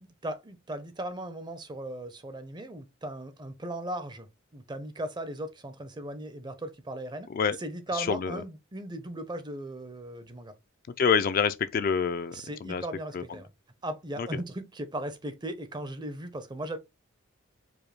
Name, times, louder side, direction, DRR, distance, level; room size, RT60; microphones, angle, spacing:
voice 1, 0.0-4.3 4.5-7.3 7.6-10.5 12.3-13.5 13.8-16.8, right 1 dB, 20° right, 0.5 m, -37 dB
voice 2, 7.9-8.4 11.0-12.4 12.7-12.8 13.1-13.2 14.2-14.3, left 6 dB, 40° left, 0.3 m, -26 dB
4.8 x 2.2 x 3.2 m
head